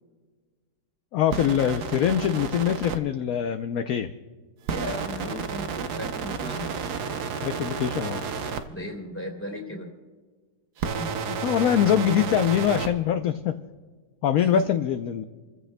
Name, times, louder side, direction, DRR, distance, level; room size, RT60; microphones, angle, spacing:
voice 1, 1.1-4.1 7.4-8.2 11.3-13.6 14.2-15.2, left 9 dB, 65° left, 8 dB, 1.0 m, -23 dB
sound 1, 1.3-3.0 4.7-8.6 10.8-12.9, right 6 dB, 75° right, 1.4 m, -31 dB
voice 2, 4.7-6.7 8.7-10.0 10.8-11.1 14.4-14.6, left 1 dB, 5° left, 1 dB, 2.6 m, -36 dB
28.5 x 15.0 x 2.2 m, 1.4 s
omnidirectional pair, 1.8 m